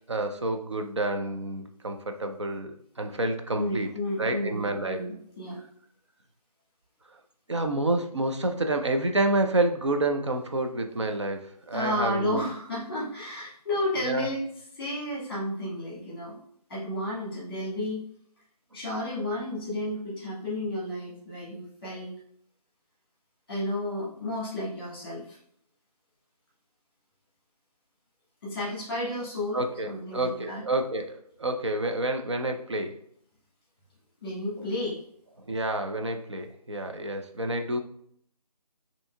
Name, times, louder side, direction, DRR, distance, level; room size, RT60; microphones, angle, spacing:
voice 1, 0.1-3.9 4.2-5.0 7.5-12.5 14.0-14.3 29.5-33.0 34.6-34.7 35.5-37.8, right 2 dB, 45° right, 5 dB, 0.4 m, -29 dB
voice 2, 3.6-5.6 11.7-14.4 14.8-16.4 16.7-18.0 18.7-22.1 23.5-25.4 28.4-30.6 34.2-35.0, left 1 dB, 15° left, -6 dB, 1.4 m, -32 dB
5.1 x 2.8 x 2.2 m, 0.66 s
figure-of-eight pair, 170°, 21 cm